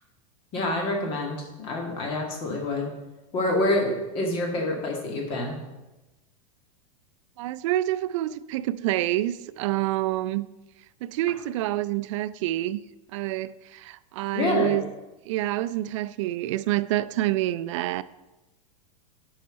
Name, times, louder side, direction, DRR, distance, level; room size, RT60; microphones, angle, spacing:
voice 1, 0.5-2.9 3.3-5.6 14.3-14.8, left 2 dB, 30° left, 1.9 m, -27 dB
voice 2, 7.4-10.5 11.0-12.8 13.1-14.9 15.2-18.0, right 15 dB, 55° right, 0.5 m, -27 dB
12.0 x 5.7 x 5.2 m
supercardioid pair, 165°, 18 cm